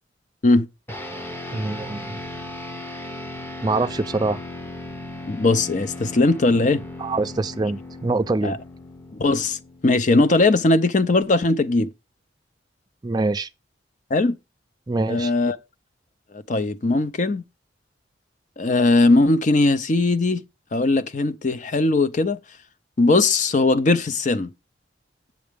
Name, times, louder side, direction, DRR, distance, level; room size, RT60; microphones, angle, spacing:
sound 1, 0.9-10.5, left 1 dB, 10° left, 0.8 m, -37 dB
voice 1, 1.5-2.2 3.6-4.4 7.0-8.6 13.0-13.5 14.9-15.3, right 2 dB, 20° right, 0.4 m, -24 dB
voice 2, 5.3-6.8 8.4-8.6 9.2-9.6 9.8-11.9 14.1-14.4 15.1-15.6 16.3-17.4 18.6-20.4 20.7-22.4 23.0-24.5, left 2 dB, 40° left, 0.6 m, -19 dB
7.8 x 7.2 x 3.4 m
head